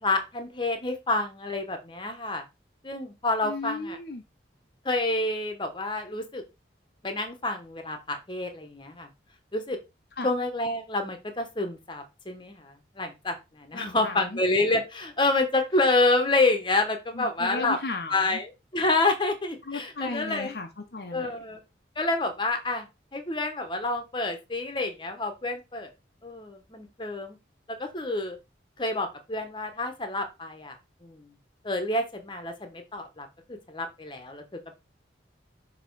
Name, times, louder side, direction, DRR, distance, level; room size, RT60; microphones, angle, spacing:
voice 1, 0.0-2.4 2.8-4.0 4.8-6.4 7.0-9.1 9.5-9.8 10.2-17.8 18.1-20.5 21.1-21.6 22.0-22.9 23.1-25.9 26.2-27.4 27.7-28.4 28.8-30.8 31.0-31.3 31.6-34.7, left 2 dB, 25° left, 6 dB, 1.0 m, -28 dB
voice 2, 3.4-4.2 10.2-10.3 13.7-14.4 17.1-18.4 19.6-21.3, left 3 dB, 55° left, 5 dB, 0.7 m, -35 dB
6.7 x 3.0 x 4.6 m, 0.25 s
head